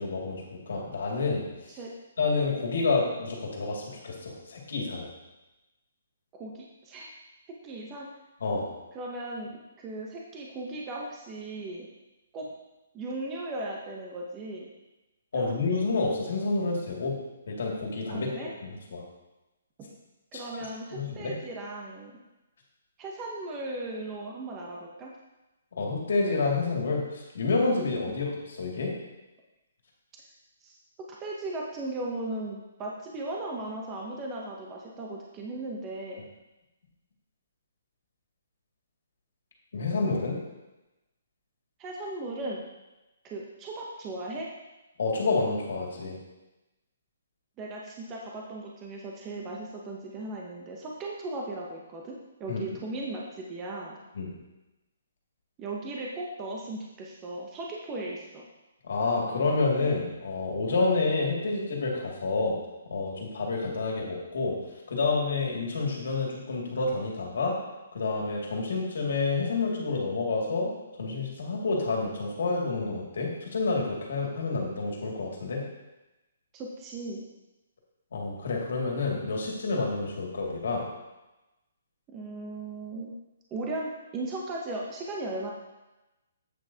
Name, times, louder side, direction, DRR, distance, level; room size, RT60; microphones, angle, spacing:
voice 1, 0.0-1.4 2.2-5.1 8.4-8.7 15.3-17.1 17.5-18.3 18.6-19.0 20.9-21.3 25.7-28.9 39.7-40.4 45.0-46.2 52.5-52.6 54.1-54.3 58.8-62.6 62.9-64.6 64.9-67.6 67.9-70.7 71.0-75.6 78.1-80.9, left 3 dB, 60° left, -1 dB, 2.1 m, -29 dB
voice 2, 6.3-7.1 7.5-8.1 8.9-11.9 12.3-12.4 12.9-14.7 15.3-15.5 18.1-18.5 19.8-19.9 20.3-22.1 23.0-25.1 30.6-30.8 31.2-36.2 41.8-42.6 43.2-44.5 47.6-54.0 55.6-58.4 76.5-77.2 82.1-83.1 83.5-85.5, right 2 dB, 15° right, -2 dB, 0.7 m, -37 dB
8.3 x 8.3 x 2.8 m, 1.0 s
hypercardioid pair, 175°, 0 cm